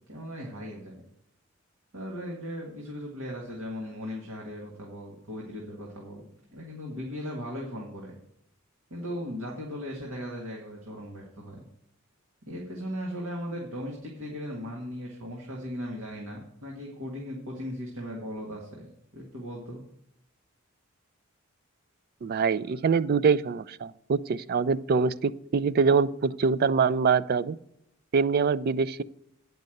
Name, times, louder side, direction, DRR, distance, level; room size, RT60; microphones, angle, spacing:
voice 1, 0.1-1.0 1.9-6.2 6.5-8.1 8.9-11.6 12.5-18.8 19.1-19.8, equal, 85° right, -2 dB, 1.8 m, -37 dB
voice 2, 22.2-27.6 28.1-29.0, right 5 dB, 45° right, 17 dB, 0.3 m, -24 dB
9.3 x 5.4 x 7.7 m, 0.78 s
head